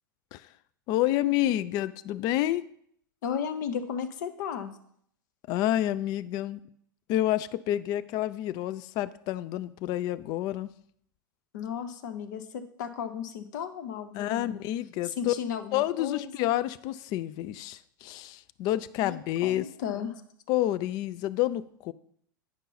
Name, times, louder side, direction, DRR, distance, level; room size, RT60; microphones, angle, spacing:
voice 1, 0.9-2.7 5.5-6.6 7.1-10.7 14.1-15.3 15.7-19.7 20.5-21.9, left 14 dB, 35° left, 15 dB, 0.3 m, -29 dB
voice 2, 3.2-4.7 11.5-14.6 15.0-16.5 19.0-19.2 19.4-20.2, left 8 dB, 55° left, 9 dB, 0.8 m, -35 dB
9.8 x 5.3 x 4.1 m, 0.68 s
figure-of-eight pair, 90°, 12 cm